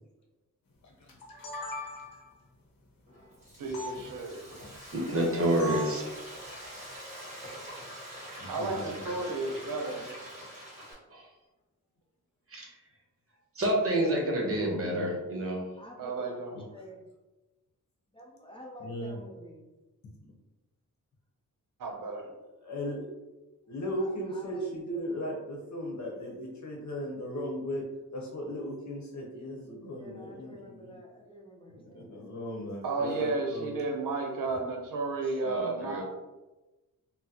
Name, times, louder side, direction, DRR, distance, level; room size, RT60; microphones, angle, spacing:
voice 1, 0.8-1.1 8.4-9.1 9.4-10.2 14.5-15.2 16.5-16.6 18.8-19.2 22.6-23.1 23.7-27.8 28.1-31.0 31.9-33.8, equal, 55° left, -1 dB, 0.9 m, -37 dB
sound 1, 1.1-2.3 3.7-3.9 5.6-6.0, equal, 90° left, 0.8 m, -38 dB
Frying (food), 3.1-10.9, equal, 20° right, 1.4 m, -45 dB
voice 2, 3.6-4.6 8.5-10.0 16.0-16.7 21.8-22.4 32.8-36.0, right 3 dB, 75° right, 2 dB, 0.7 m, -33 dB
voice 3, 4.9-6.1 11.1-11.3 12.5-12.7 13.5-15.6 35.4-36.0, right 1 dB, 40° right, -1 dB, 0.9 m, -28 dB
voice 4, 15.8-16.4 16.7-17.0 18.1-19.7 23.9-25.2 30.0-32.3 35.2-35.4, equal, 15° left, -1 dB, 0.5 m, -49 dB
3.8 x 2.0 x 2.8 m, 1.1 s
wide cardioid pair, 105°, 33 cm